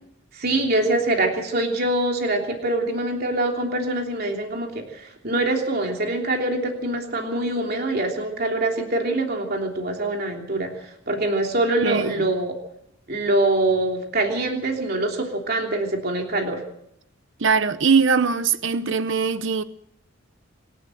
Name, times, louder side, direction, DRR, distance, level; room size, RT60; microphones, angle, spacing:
voice 1, 0.3-12.6 13.1-16.6, right 2 dB, 45° right, 3.2 m, -24 dB
voice 2, 11.8-12.3 17.4-19.6, right 5 dB, 60° right, 0.8 m, -21 dB
26.5 x 12.5 x 7.9 m
head